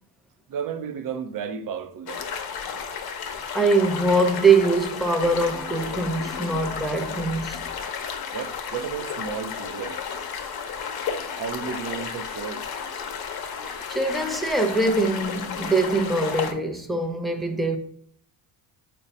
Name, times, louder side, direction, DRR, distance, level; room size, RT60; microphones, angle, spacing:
voice 1, 0.5-2.3 8.3-10.0 11.4-12.7, right 7 dB, 45° right, 0.6 m, -33 dB
sound 1, 2.1-16.5, left 6 dB, 55° left, 0.7 m, -33 dB
voice 2, 3.5-7.6 13.9-17.8, right 3 dB, ahead, 0.5 m, -23 dB
3.9 x 2.2 x 4.1 m
supercardioid pair, 75°, 46 cm